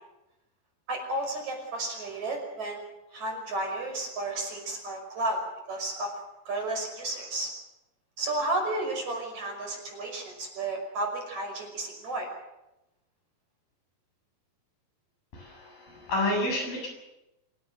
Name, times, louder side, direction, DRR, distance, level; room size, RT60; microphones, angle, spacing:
voice 1, 0.9-2.9 3.1-5.4 5.7-6.1 6.5-7.5 8.2-12.3, right 2 dB, 50° right, 2 dB, 7.0 m, -32 dB
voice 2, 15.3-16.9, left 1 dB, 80° left, 1 dB, 9.4 m, -30 dB
26.5 x 17.5 x 7.9 m, 0.94 s
omnidirectional pair, 4.1 m